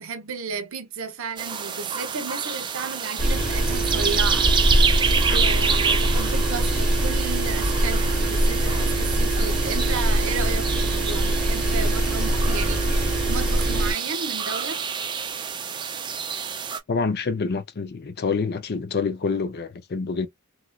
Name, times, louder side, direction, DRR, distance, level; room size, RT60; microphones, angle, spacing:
voice 1, 0.0-4.5 5.3-14.8, right 4 dB, 65° right, 0.7 m, -33 dB
sound 1, 1.4-16.8, right 6 dB, 20° right, 0.3 m, -28 dB
sound 2, 3.2-13.9, right 1 dB, 5° right, 1.0 m, -23 dB
voice 2, 16.9-20.3, left 4 dB, 45° left, 0.4 m, -27 dB
3.0 x 2.4 x 2.2 m
head